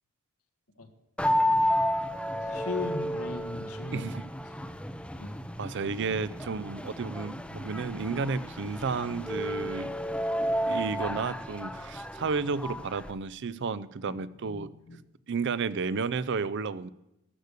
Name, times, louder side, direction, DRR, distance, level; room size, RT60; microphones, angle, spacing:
sound 1, 1.2-13.1, equal, 5° left, 0.6 m, -31 dB
voice 1, 2.4-4.1 5.2-5.4 14.1-15.0, left 3 dB, 90° left, 6 dB, 1.6 m, -38 dB
voice 2, 3.9-4.3 5.6-9.9 10.7-14.7 15.3-16.9, right 4 dB, 55° right, 18 dB, 0.5 m, -32 dB
13.0 x 6.6 x 8.2 m, 0.87 s
head